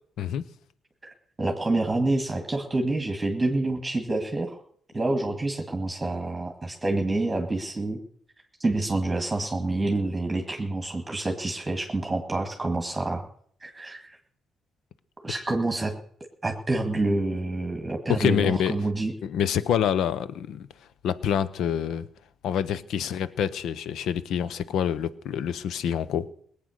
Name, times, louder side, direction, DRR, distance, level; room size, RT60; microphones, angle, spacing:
voice 1, 1.4-4.6 4.9-8.0 8.6-13.2 13.6-14.2 15.2-15.9 16.4-19.1, right 2 dB, 15° right, 3 dB, 2.0 m, -27 dB
voice 2, 18.1-18.7 19.2-20.7 21.0-22.1 22.4-26.3, left 9 dB, 75° left, 17 dB, 0.8 m, -26 dB
19.0 x 8.8 x 6.5 m, 0.62 s
cardioid pair, 90°, 0 cm